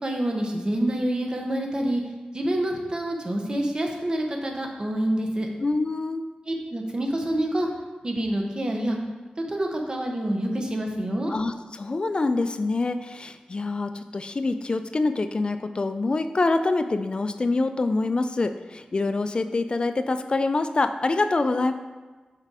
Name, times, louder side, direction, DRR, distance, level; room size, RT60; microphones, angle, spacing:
voice 1, 0.0-2.0 2.3-5.5 6.5-7.7 8.0-9.0 9.4-11.3, right 1 dB, 30° right, 2 dB, 1.0 m, -27 dB
voice 2, 5.6-6.3 11.3-21.7, left 3 dB, 35° left, 9 dB, 0.4 m, -25 dB
6.6 x 5.2 x 4.8 m, 1.3 s
wide cardioid pair, 125°, 3 cm